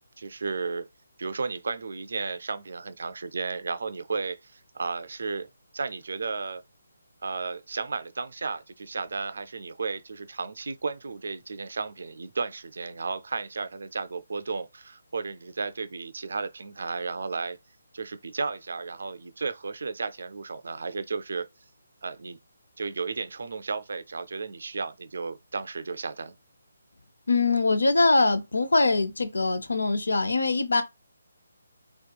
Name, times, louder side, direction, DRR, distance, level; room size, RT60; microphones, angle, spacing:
voice 1, 0.2-0.9 1.2-5.5 5.7-6.6 7.2-17.6 17.9-21.5 22.0-22.4 22.8-26.4, right 4 dB, 70° right, 0.3 m, -33 dB
voice 2, 27.3-30.8, left 3 dB, 85° left, 0.5 m, -23 dB
2.8 x 2.2 x 2.2 m
hypercardioid pair, 160°, 0 cm